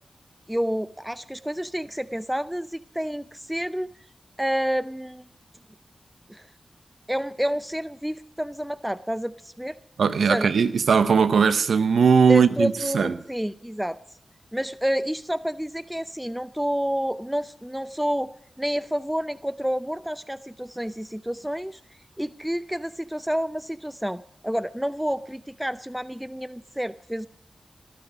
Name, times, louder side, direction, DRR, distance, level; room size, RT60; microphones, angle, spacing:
voice 1, 0.5-3.9 4.4-5.2 6.3-6.5 7.1-9.8 10.3-10.5 12.3-14.0 14.5-18.3 18.6-21.8 22.2-27.3, equal, 5° right, 0.6 m, -29 dB
voice 2, 10.0-13.1, right 6 dB, 90° right, 0.8 m, -19 dB
19.0 x 12.5 x 5.0 m
cardioid pair, 45°, 0 cm